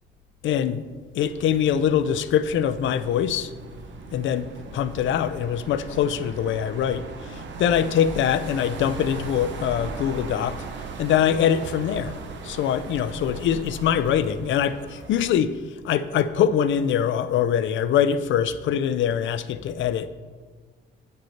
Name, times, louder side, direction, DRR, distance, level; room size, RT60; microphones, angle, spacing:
voice 1, 0.4-0.8 1.1-3.5 4.1-7.0 7.3-10.7 11.0-12.1 12.4-15.6 15.8-20.1, left 9 dB, 75° left, 13 dB, 0.5 m, -23 dB
sound 1, 1.2-15.3, right 4 dB, 70° right, 1.0 m, -38 dB
9.1 x 5.4 x 5.8 m, 1.5 s
cardioid pair, 90°, 20 cm